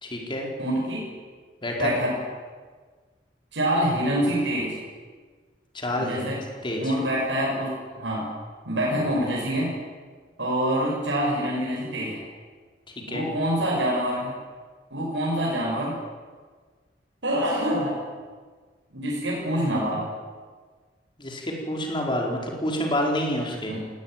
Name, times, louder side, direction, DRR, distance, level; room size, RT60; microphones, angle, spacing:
voice 1, 0.0-0.5 1.6-1.9 5.7-6.3 6.6-6.8 13.1-13.3 21.2-23.7, left 1 dB, 25° left, 0 dB, 4.7 m, -28 dB
voice 2, 0.6-1.1 1.8-2.2 3.5-4.8 6.0-6.4 6.8-8.3 8.6-9.8 10.4-12.2 13.1-14.3 14.9-16.0 17.2-18.1 18.9-20.1 23.7-23.9, equal, 80° right, -4 dB, 6.5 m, -26 dB
18.5 x 18.0 x 9.2 m, 1.5 s
head